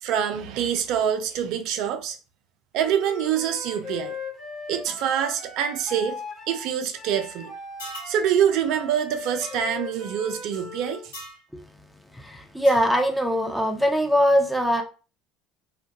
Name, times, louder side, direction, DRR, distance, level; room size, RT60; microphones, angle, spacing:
voice 1, 0.0-2.2 2.7-4.2 4.7-6.2 6.5-7.5 8.1-11.1, right 9 dB, 60° right, 0.4 m, -25 dB
Wind instrument woodwind instrument, 2.7-11.1, left 4 dB, 30° left, 1.1 m, -39 dB
sound 1, 7.8-8.2 9.4-9.6 11.1-11.4 12.6-12.9, equal, 75° left, 0.8 m, -39 dB
voice 2, 12.2-14.8, equal, ahead, 0.6 m, -21 dB
2.2 x 2.2 x 2.7 m
hypercardioid pair, 65°, 0 cm